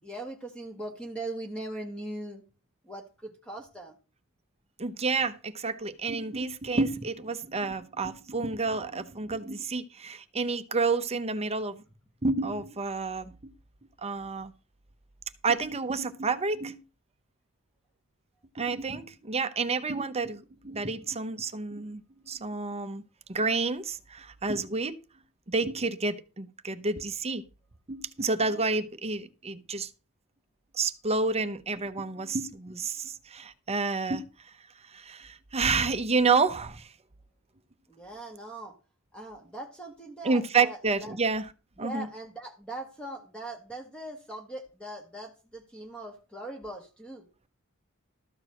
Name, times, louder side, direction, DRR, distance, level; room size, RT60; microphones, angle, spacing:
voice 1, 0.0-2.4 2.8-4.0 37.9-38.7 39.1-41.2 41.8-47.3, right 1 dB, 5° left, 1.7 m, -40 dB
voice 2, 4.8-11.8 12.2-13.5 14.0-14.5 15.4-16.8 18.6-22.0 22.3-23.0 23.3-25.0 25.5-27.4 27.9-29.9 30.7-34.3 34.9-36.9 40.2-41.4 41.8-42.1, right 4 dB, 30° right, 0.8 m, -29 dB
13.5 x 4.7 x 7.6 m
head